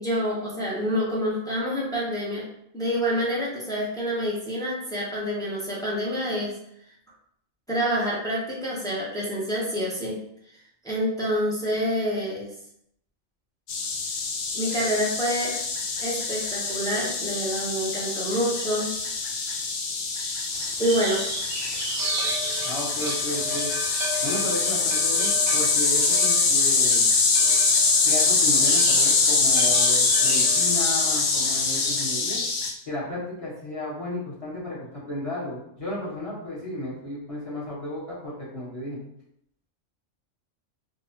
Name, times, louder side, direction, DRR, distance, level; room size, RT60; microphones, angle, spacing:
voice 1, 0.0-2.4 2.7-6.6 7.7-10.2 10.8-12.5 14.5-15.5 16.0-18.9 20.8-21.2, equal, 5° left, -5 dB, 0.5 m, -27 dB
sound 1, 13.7-32.7, left 4 dB, 75° left, 1.0 m, -24 dB
sound 2, 20.5-32.2, right 2 dB, 60° right, 0.6 m, -34 dB
voice 2, 22.6-23.7 24.2-27.1 28.0-32.4 32.9-39.0, left 1 dB, 30° left, -8 dB, 1.2 m, -33 dB
3.6 x 2.0 x 2.8 m, 0.73 s
omnidirectional pair, 1.3 m